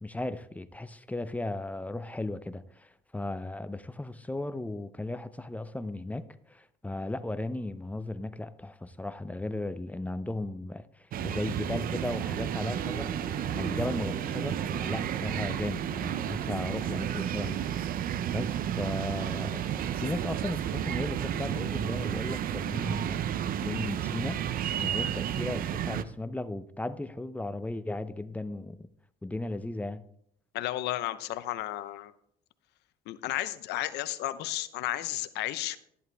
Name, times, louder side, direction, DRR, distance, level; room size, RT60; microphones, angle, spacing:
voice 1, 0.0-13.1 13.5-17.6 18.3-24.4 24.8-28.9 29.2-30.0, left 2 dB, 10° left, 0.6 m, -36 dB
sound 1, 11.1-26.0, right 10 dB, 60° right, 0.6 m, -32 dB
Piano, 12.8-20.6, equal, 5° right, 1.7 m, -48 dB
voice 2, 30.5-32.1 33.1-35.8, left 15 dB, 85° left, 0.8 m, -33 dB
12.5 x 11.0 x 3.4 m
cardioid pair, 110°, 17 cm